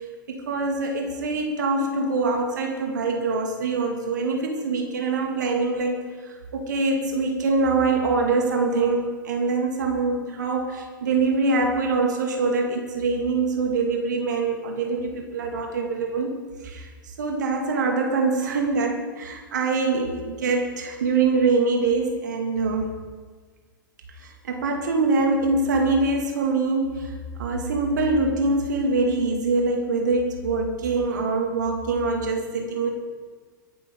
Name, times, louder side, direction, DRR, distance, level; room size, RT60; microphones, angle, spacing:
voice 1, 0.3-6.0 6.5-16.3 16.6-16.9 17.2-23.0 24.2-27.1 27.4-32.9, right 3 dB, 60° right, 2 dB, 2.5 m, -24 dB
23.5 x 11.5 x 4.0 m, 1.5 s
figure-of-eight pair, 95°, 11 cm